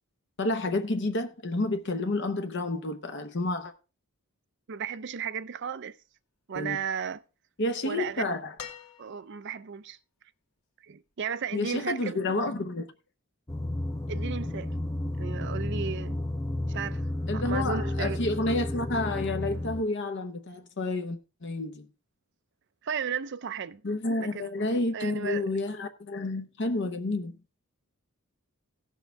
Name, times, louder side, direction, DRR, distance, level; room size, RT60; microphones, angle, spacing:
voice 1, 0.4-3.7 6.5-6.8 7.6-8.5 11.5-12.9 17.3-21.8 23.8-27.4, left 2 dB, 55° left, 0.8 m, -30 dB
voice 2, 4.7-6.0 6.5-7.2 7.8-8.2 9.0-10.0 10.8-12.2 14.1-14.8 15.2-16.2 16.7-18.3 22.8-23.8 24.2-25.5, right 6 dB, 50° right, 0.5 m, -35 dB
sound 1, 8.6-9.6 11.1-11.2, left 8 dB, 85° left, 1.5 m, -45 dB
sound 2, 13.5-19.8, left 1 dB, 15° left, 0.5 m, -32 dB
16.5 x 6.5 x 3.4 m
head